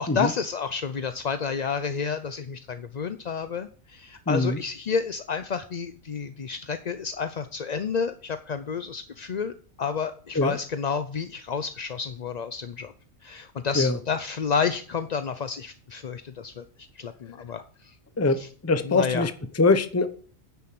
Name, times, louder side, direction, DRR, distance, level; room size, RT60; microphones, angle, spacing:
voice 1, 0.0-12.9 13.2-16.6 16.9-17.9 18.4-18.5 18.9-19.3, left 6 dB, 45° left, 10 dB, 0.5 m, -30 dB
voice 2, 4.3-4.6 10.3-10.6 13.7-14.0 18.2-20.1, left 3 dB, 15° left, 10 dB, 0.7 m, -23 dB
10.5 x 7.1 x 7.7 m, 0.43 s
omnidirectional pair, 1.4 m